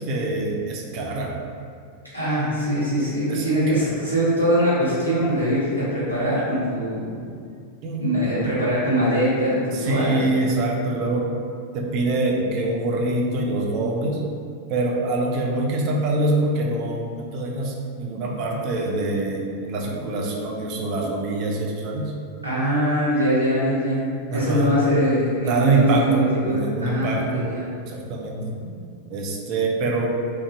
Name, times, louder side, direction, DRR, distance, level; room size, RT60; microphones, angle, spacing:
voice 1, 0.0-1.4 3.3-3.9 7.8-8.1 9.7-11.3 11.7-14.2 14.7-22.1 24.3-24.7 25.4-27.4 27.9-28.8 29.1-30.2, right 2 dB, 40° right, 0 dB, 0.3 m, -25 dB
voice 2, 2.1-7.4 8.0-10.2 22.4-27.7, equal, 90° left, -11 dB, 0.8 m, -22 dB
2.5 x 2.1 x 2.4 m, 2.2 s
figure-of-eight pair, 90°, 0 cm